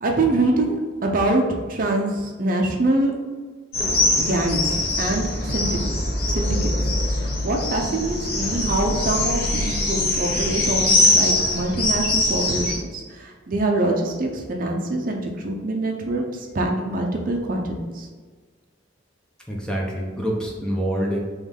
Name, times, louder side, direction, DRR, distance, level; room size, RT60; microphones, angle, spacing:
voice 1, 0.0-1.4 1.7-3.1 4.2-5.8 6.3-6.7 7.2-16.2 16.5-18.1, right 2 dB, 45° right, 1 dB, 0.5 m, -24 dB
sound 1, 3.7-12.8, left 2 dB, 55° left, 0.9 m, -22 dB
voice 2, 19.5-21.2, equal, 5° left, -2 dB, 0.6 m, -26 dB
3.6 x 3.0 x 3.7 m, 1.5 s
head